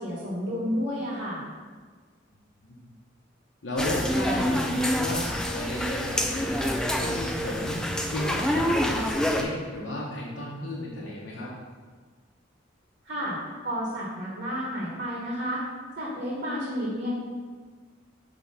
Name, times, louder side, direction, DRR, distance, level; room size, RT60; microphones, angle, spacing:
voice 1, 0.0-1.4 13.0-13.4 13.6-15.6 16.0-17.1, equal, 50° right, -6 dB, 1.4 m, -31 dB
voice 2, 3.6-11.5, left 1 dB, 80° left, -5 dB, 0.9 m, -34 dB
sound 1, 3.8-9.4, equal, 5° left, 0.4 m, -27 dB
6.0 x 3.0 x 5.4 m, 1.5 s
head